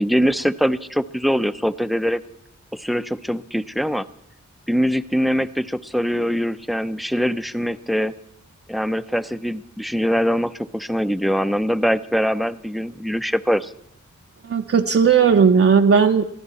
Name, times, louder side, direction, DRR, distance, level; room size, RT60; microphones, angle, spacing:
voice 1, 0.0-2.2 2.7-4.1 4.7-8.1 8.7-13.7, equal, ahead, 14 dB, 0.5 m, -22 dB
voice 2, 14.4-16.2, right 6 dB, 50° right, 3 dB, 0.6 m, -15 dB
22.5 x 15.0 x 4.2 m, 0.78 s
wide cardioid pair, 75°, 30 cm